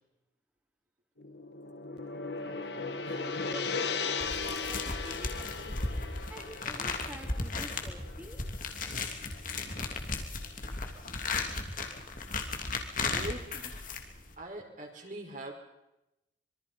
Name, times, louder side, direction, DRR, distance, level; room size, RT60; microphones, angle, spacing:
Gong, 1.2-9.5, left 4 dB, 60° left, 2.2 m, -37 dB
voice 1, 2.7-6.0 6.3-8.4, equal, 10° right, -1 dB, 4.0 m, -49 dB
sound 1, 4.2-14.4, left 3 dB, 45° left, 3.0 m, -36 dB
voice 2, 13.0-13.7 14.4-15.5, right 1 dB, 40° right, 1 dB, 5.2 m, -42 dB
26.0 x 24.0 x 5.4 m, 0.91 s
head